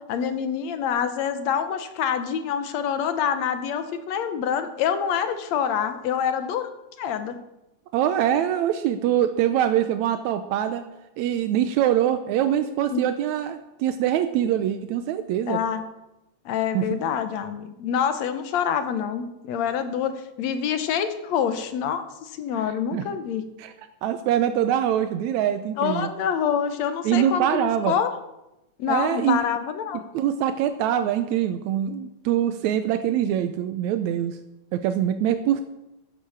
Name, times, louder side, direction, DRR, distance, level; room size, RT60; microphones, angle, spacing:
voice 1, 0.1-6.7 7.0-7.4 12.9-13.0 15.5-15.8 16.5-23.5 25.8-28.1 28.8-30.0, left 8 dB, 70° left, 10 dB, 2.1 m, -26 dB
voice 2, 7.9-10.9 11.2-15.6 16.7-17.0 22.5-22.6 22.9-23.1 23.6-23.7 24.0-26.1 27.1-28.0 28.9-29.4 30.1-34.4 34.7-35.6, right 10 dB, 85° right, 9 dB, 2.0 m, -24 dB
11.5 x 10.0 x 7.2 m, 0.95 s
omnidirectional pair, 3.3 m